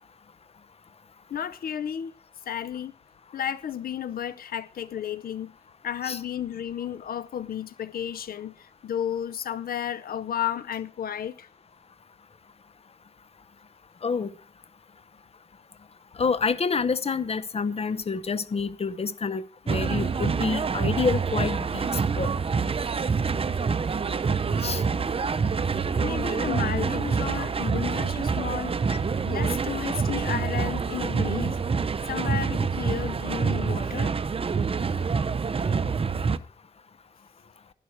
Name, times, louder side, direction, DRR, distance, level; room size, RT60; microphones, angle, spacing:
voice 1, 1.3-2.1 2.5-2.9 3.3-5.5 5.8-11.5 26.0-28.7 29.3-31.6 32.1-34.2, left 9 dB, 90° left, 0.6 m, -32 dB
voice 2, 16.2-21.9 22.2-22.3 24.6-24.8 28.9-29.0, left 5 dB, 45° left, 0.8 m, -28 dB
sound 1, 19.7-36.4, right 5 dB, 40° right, 0.6 m, -26 dB
12.0 x 11.0 x 4.5 m
wide cardioid pair, 120°, 15 cm